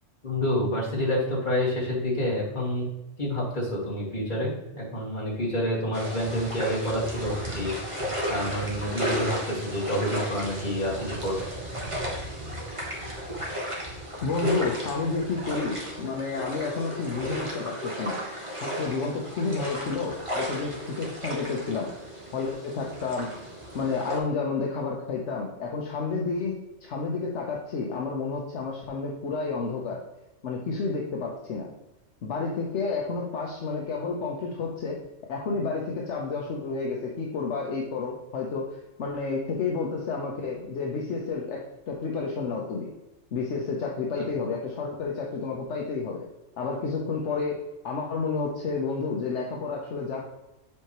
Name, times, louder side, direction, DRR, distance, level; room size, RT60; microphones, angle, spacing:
voice 1, 0.2-2.9 3.2-7.8 8.3-11.5 44.2-44.3, equal, 40° left, -5 dB, 2.2 m, -28 dB
sound 1, 5.9-24.2, equal, 25° right, 1.3 m, -34 dB
voice 2, 14.2-18.2 18.6-21.9 22.3-23.3 23.7-26.6 26.8-30.0 30.4-31.7 32.2-35.0 35.3-42.9 43.3-46.2 46.6-47.6 47.8-50.3, left 4 dB, 65° left, -1 dB, 1.1 m, -30 dB
7.6 x 4.7 x 3.0 m, 0.97 s
omnidirectional pair, 1.3 m